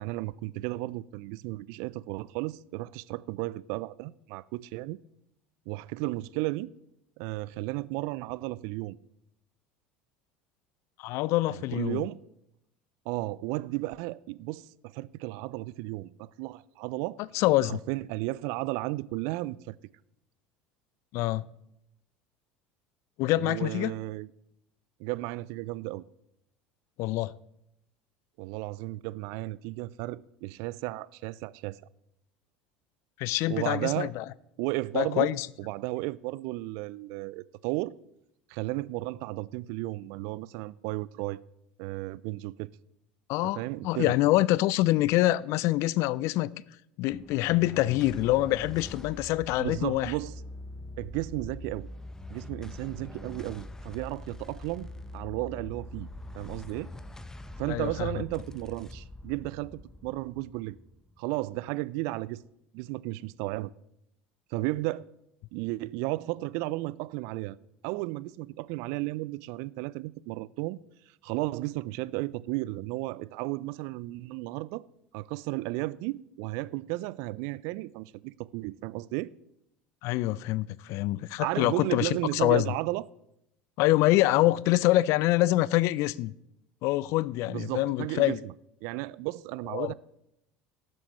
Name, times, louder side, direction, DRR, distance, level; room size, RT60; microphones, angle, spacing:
voice 1, 0.0-5.0 5.7-6.7 7.2-9.0 11.5-12.2 13.1-17.2 17.6-19.8 23.4-24.3 25.0-26.0 28.4-31.8 33.5-34.1 34.6-37.9 38.5-41.4 41.8-42.7 43.5-44.1 49.6-50.3 51.0-51.9 52.3-54.9 55.1-56.1 56.3-56.9 57.6-60.8 61.2-62.4 62.7-63.7 64.5-65.0 65.5-67.6 67.8-70.8 71.2-74.8 75.1-79.3 81.4-83.1 87.5-88.5 88.8-89.9, right 19 dB, 60° right, 0.4 m, -34 dB
voice 2, 11.0-12.0 17.3-17.8 21.1-21.5 23.2-23.9 27.0-27.3 33.2-34.2 34.9-35.5 43.3-46.5 47.0-50.1 57.7-58.1 80.0-82.7 83.8-86.3 86.8-88.4 89.7-89.9, left 17 dB, 55° left, 0.4 m, -25 dB
sound 1, 47.1-61.7, left 1 dB, 10° left, 0.8 m, -44 dB
18.0 x 7.7 x 3.0 m
hypercardioid pair, 70°, 6 cm